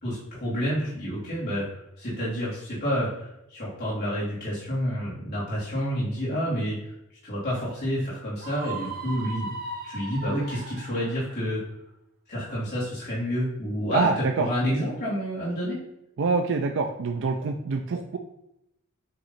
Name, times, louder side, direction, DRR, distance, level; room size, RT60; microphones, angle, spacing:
voice 1, 0.0-6.9 7.2-9.5 9.8-11.6 12.3-15.8, equal, 50° left, -9 dB, 2.4 m, -29 dB
Screaming, 8.4-11.3, right 3 dB, 40° right, 0.9 m, -37 dB
voice 2, 13.9-14.5 16.2-18.2, right 4 dB, 55° right, 5 dB, 0.4 m, -25 dB
7.7 x 3.1 x 4.1 m, 0.83 s
head